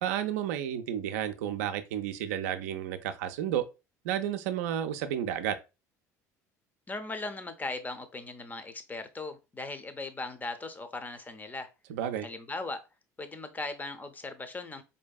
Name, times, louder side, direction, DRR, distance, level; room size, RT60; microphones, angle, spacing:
voice 1, 0.0-3.6 4.0-5.6 11.9-12.3, right 10 dB, 70° right, 0.4 m, -31 dB
voice 2, 6.9-11.7 12.2-12.8 13.2-14.8, left 3 dB, 20° left, 0.6 m, -38 dB
4.5 x 2.7 x 2.2 m
figure-of-eight pair, 60°, 9 cm